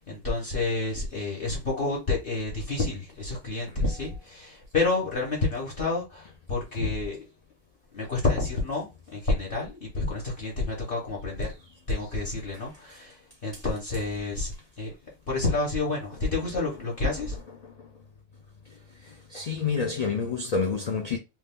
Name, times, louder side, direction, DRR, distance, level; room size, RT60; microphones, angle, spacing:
voice 1, 0.0-7.2 7.9-11.5 11.9-14.9 15.3-17.4, left 3 dB, 50° left, 1.1 m, -29 dB
voice 2, 19.0-21.2, left 5 dB, 85° left, 0.3 m, -29 dB
2.6 x 2.3 x 3.4 m
omnidirectional pair, 1.3 m